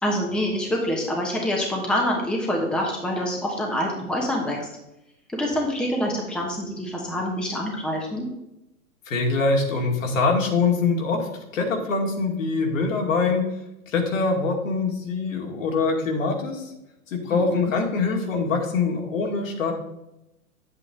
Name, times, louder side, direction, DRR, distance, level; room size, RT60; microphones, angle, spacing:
voice 1, 0.0-4.7 5.3-8.3 17.3-17.7, equal, ahead, -1 dB, 1.1 m, -26 dB
voice 2, 9.1-13.5 13.9-16.7 17.1-19.7, left 4 dB, 60° left, 1 dB, 2.4 m, -24 dB
8.9 x 8.0 x 3.7 m, 0.88 s
hypercardioid pair, 125°, 44 cm